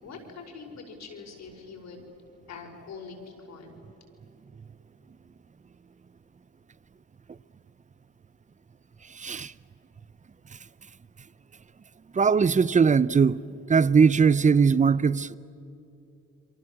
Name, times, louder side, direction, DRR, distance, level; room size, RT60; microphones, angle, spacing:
voice 1, 0.0-2.1 2.5-3.8, left 5 dB, 65° left, 5.5 m, -43 dB
voice 2, 9.1-9.5 12.1-13.4 13.7-15.4, right 5 dB, 25° right, 0.6 m, -20 dB
29.0 x 23.5 x 7.5 m
cardioid pair, 90°, 30 cm